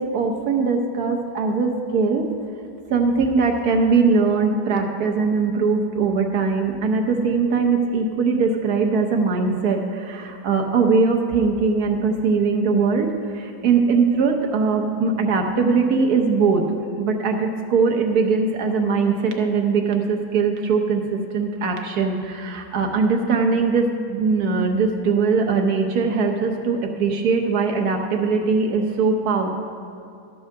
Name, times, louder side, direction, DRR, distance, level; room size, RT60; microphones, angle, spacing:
voice 1, 0.0-2.3 2.9-16.6 17.0-29.5, right 4 dB, 70° right, 3 dB, 1.4 m, -21 dB
13.0 x 4.8 x 6.4 m, 2.7 s
omnidirectional pair, 1.8 m